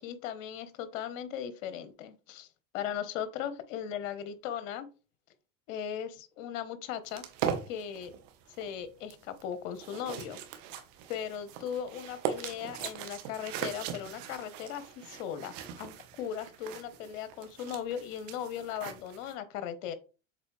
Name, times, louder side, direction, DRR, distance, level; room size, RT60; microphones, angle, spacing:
voice 1, 0.0-2.5 2.7-4.9 5.7-7.2 7.7-8.1 8.6-10.4 11.1-19.9, left 9 dB, 65° left, 12 dB, 1.2 m, -38 dB
sound 1, 7.1-19.3, right 8 dB, 65° right, 1.3 m, -40 dB
7.3 x 4.2 x 3.3 m, 0.34 s
hypercardioid pair, 95°, 41 cm